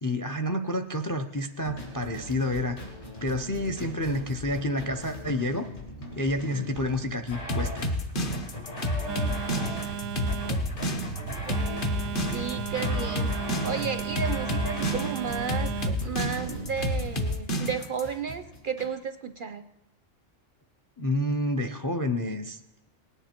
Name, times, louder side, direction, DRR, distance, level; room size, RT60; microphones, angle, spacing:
voice 1, 0.0-2.8 3.2-5.7 6.2-7.9 21.0-22.6, left 1 dB, 30° left, 9 dB, 0.4 m, -29 dB
sound 1, 1.6-18.9, left 1 dB, 60° left, 3.0 m, -39 dB
sound 2, 7.5-18.0, left 1 dB, 45° left, 1.1 m, -29 dB
Telephone, 9.1-17.3, right 7 dB, 90° right, 1.1 m, -35 dB
voice 2, 12.3-13.3 13.6-15.7 16.0-19.6, right 6 dB, 55° right, 10 dB, 0.6 m, -33 dB
18.5 x 9.9 x 4.4 m, 0.99 s
omnidirectional pair, 1.3 m